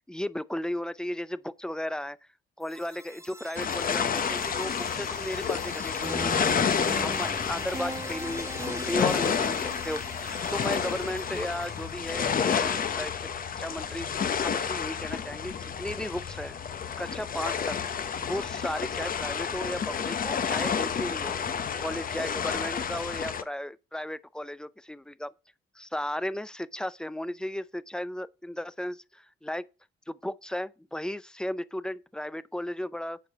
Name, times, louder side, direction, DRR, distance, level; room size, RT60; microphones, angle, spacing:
voice 1, 0.1-2.2 2.6-6.7 7.0-9.6 9.8-13.1 13.6-14.1 14.4-16.6 17.0-17.8 18.3-21.4 21.8-25.3 25.8-29.7 30.1-33.2, left 1 dB, 5° left, 0.5 m, -35 dB
sound 1, 2.6-12.5, right 2 dB, 15° right, 1.4 m, -41 dB
sound 2, 3.6-23.4, left 7 dB, 45° left, 0.9 m, -30 dB
8.9 x 4.8 x 5.9 m
cardioid pair, 90°, 20 cm